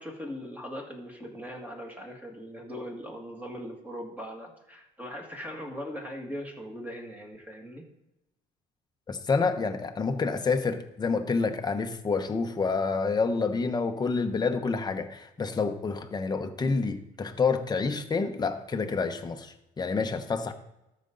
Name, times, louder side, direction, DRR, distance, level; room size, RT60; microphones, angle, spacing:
voice 1, 0.0-7.9 20.5-20.6, equal, 10° right, 0 dB, 2.3 m, -40 dB
voice 2, 9.1-20.5, left 4 dB, 25° left, 6 dB, 1.0 m, -28 dB
13.5 x 5.2 x 4.0 m, 0.92 s
cardioid pair, 110°, 17 cm